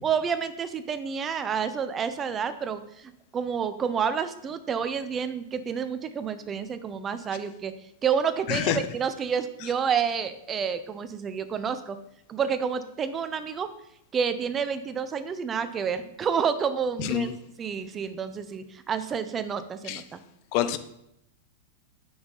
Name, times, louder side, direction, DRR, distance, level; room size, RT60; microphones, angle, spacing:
voice 1, 0.0-7.7 8.0-12.0 12.3-13.7 14.1-17.3 17.6-20.2, right 7 dB, 25° right, 0.5 m, -29 dB
voice 2, 8.5-8.8 17.0-17.4 19.9-20.0 20.5-20.8, left 11 dB, 50° left, 0.5 m, -26 dB
5.8 x 5.6 x 3.8 m
hypercardioid pair, 110°, 0 cm